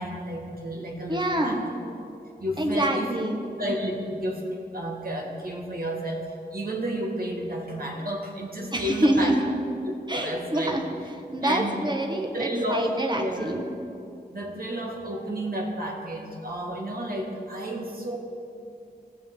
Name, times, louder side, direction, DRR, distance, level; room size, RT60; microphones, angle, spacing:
voice 1, 0.0-1.8 2.4-4.5 4.7-9.3 10.1-10.8 11.4-11.8 12.3-12.9 13.1-13.5 14.3-18.2, equal, 60° right, -1 dB, 2.0 m, -31 dB
voice 2, 1.1-1.6 2.6-3.4 8.7-9.5 10.1-13.6, right 1 dB, 25° right, 2 dB, 1.4 m, -26 dB
19.5 x 7.0 x 3.8 m, 2.5 s
wide cardioid pair, 80°, 17 cm